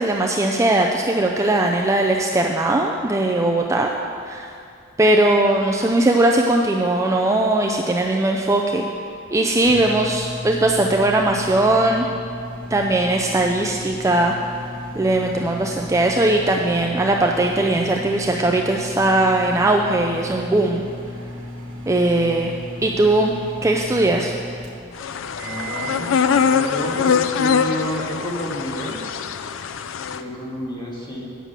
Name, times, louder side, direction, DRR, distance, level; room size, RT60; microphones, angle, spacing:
voice 1, 0.0-3.9 4.2-4.5 5.0-8.9 9.3-12.1 12.7-14.3 14.9-20.8 21.9-22.5 22.8-23.3 23.6-24.3, right 2 dB, 15° right, 1 dB, 0.4 m, -19 dB
sound 1, 9.1-26.0, left 1 dB, 75° right, 1.3 m, -35 dB
sound 2, 25.0-30.2, left 6 dB, 70° left, 0.4 m, -22 dB
voice 2, 25.4-29.1 30.1-31.3, equal, 25° left, -3 dB, 1.8 m, -30 dB
9.0 x 6.4 x 6.6 m, 2.4 s
head